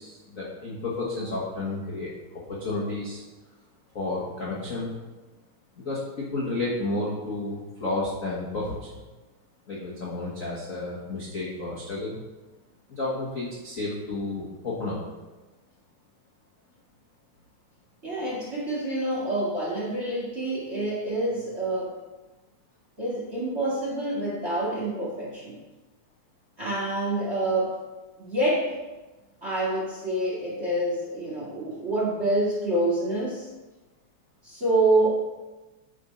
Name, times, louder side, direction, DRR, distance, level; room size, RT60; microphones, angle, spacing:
voice 1, 0.0-3.2 3.9-5.0 5.8-9.0 9.7-12.2 12.9-15.0, left 2 dB, 40° left, -6 dB, 1.2 m, -31 dB
voice 2, 18.0-22.0 23.0-25.6 26.6-27.8 28.2-28.7 29.4-33.5 34.4-35.1, right 1 dB, 25° right, -5 dB, 1.8 m, -27 dB
9.6 x 4.7 x 5.3 m, 1.2 s
omnidirectional pair, 3.5 m